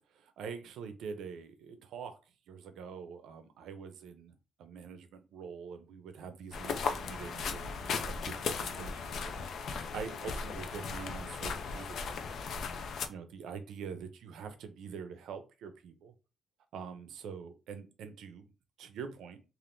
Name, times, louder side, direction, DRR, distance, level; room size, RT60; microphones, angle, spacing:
voice 1, 0.1-2.2 2.5-12.1 12.8-16.1 16.7-18.5 18.8-19.4, right 6 dB, 85° right, 9 dB, 0.5 m, -45 dB
sound 1, 6.5-13.1, left 5 dB, 55° left, 0.4 m, -37 dB
3.4 x 2.4 x 2.6 m, 0.31 s
cardioid pair, 180°, 0 cm